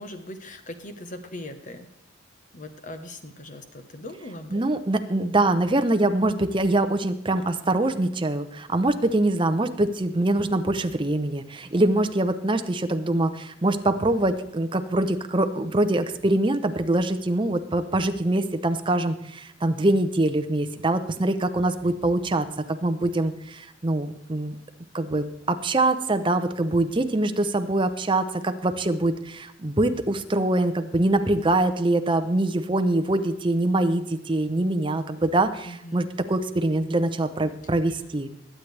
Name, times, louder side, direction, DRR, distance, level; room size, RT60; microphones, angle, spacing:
voice 1, 0.0-1.9 2.5-4.6 35.7-36.0, left 1 dB, 40° left, 9 dB, 1.1 m, -40 dB
voice 2, 4.5-24.6 24.9-38.3, right 2 dB, 25° right, 8 dB, 0.7 m, -24 dB
20.5 x 8.6 x 3.4 m, 0.84 s
head